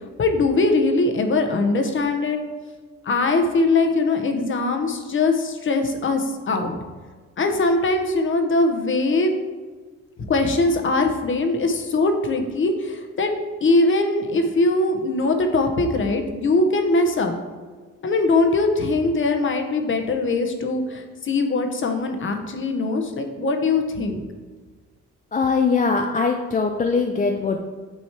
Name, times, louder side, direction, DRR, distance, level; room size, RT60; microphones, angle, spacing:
voice 1, 0.2-2.4 3.0-6.8 7.4-9.3 10.3-13.3 13.6-17.3 18.0-24.2, left 3 dB, 40° left, 5 dB, 0.9 m, -21 dB
voice 2, 25.3-27.6, left 4 dB, 25° left, 3 dB, 0.5 m, -21 dB
8.7 x 3.1 x 4.5 m, 1.4 s
cardioid pair, 90°, 30 cm